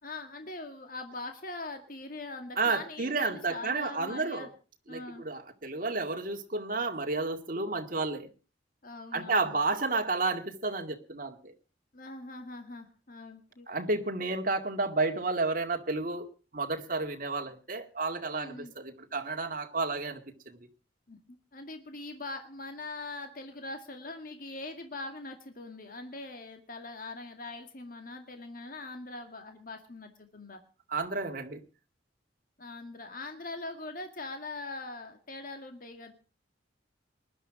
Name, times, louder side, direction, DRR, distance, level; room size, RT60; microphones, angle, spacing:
voice 1, 0.0-4.5 4.9-5.2 8.8-9.6 11.9-13.7 18.3-18.7 21.1-30.6 32.6-36.1, left 2 dB, 50° left, 6 dB, 2.1 m, -42 dB
voice 2, 2.6-4.5 4.9-8.3 9.1-11.5 13.7-16.3 16.5-20.2 20.5-20.6 30.9-31.6, right 3 dB, 50° right, 4 dB, 2.1 m, -31 dB
20.0 x 11.5 x 4.9 m, 0.37 s
head